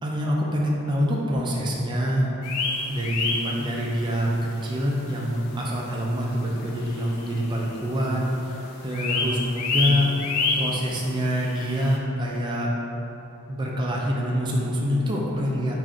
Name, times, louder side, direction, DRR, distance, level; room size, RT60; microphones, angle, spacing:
voice 1, 0.0-2.3 2.9-4.3 4.6-10.1 10.6-12.7 13.5-15.8, equal, 20° right, -3 dB, 0.4 m, -25 dB
sound 1, 2.4-4.1 4.5-4.6 5.1-5.2 5.9-6.0 6.2-6.3 6.6-7.7 8.0-8.3 8.6-12.0, left 4 dB, 80° left, 0.4 m, -28 dB
3.5 x 2.4 x 3.7 m, 2.9 s
head